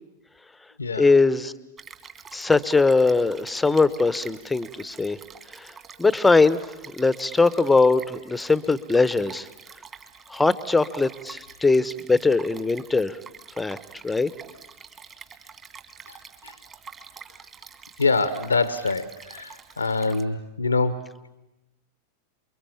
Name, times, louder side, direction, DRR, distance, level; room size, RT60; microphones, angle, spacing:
voice 1, 1.0-1.5 2.3-5.2 5.5-5.7 6.0-6.6 6.9-9.5 10.3-13.1 13.6-13.8 14.0-14.3, left 3 dB, 10° left, 16 dB, 1.0 m, -21 dB
Stream, 1.8-20.2, right 6 dB, 25° right, 2.4 m, -46 dB
voice 2, 18.0-21.0, left 3 dB, 80° left, 14 dB, 1.0 m, -25 dB
29.0 x 23.0 x 8.8 m, 0.94 s
figure-of-eight pair, 90°, 0 cm